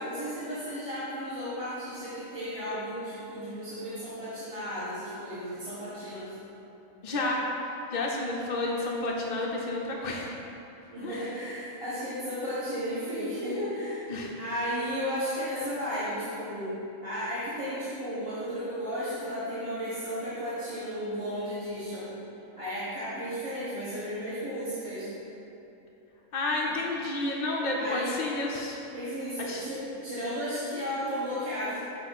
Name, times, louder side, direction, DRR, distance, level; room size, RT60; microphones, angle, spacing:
voice 1, 0.0-6.3 10.9-14.1 14.4-16.7 17.0-22.1 22.6-25.1 27.8-28.2 28.9-31.8, equal, 25° right, -13 dB, 1.4 m, -34 dB
voice 2, 7.0-7.4 7.9-10.3 11.0-11.4 14.1-14.3 26.3-28.8 29.4-29.6, left 2 dB, 60° left, -2 dB, 0.4 m, -30 dB
7.6 x 3.0 x 5.9 m, 2.9 s
omnidirectional pair, 1.5 m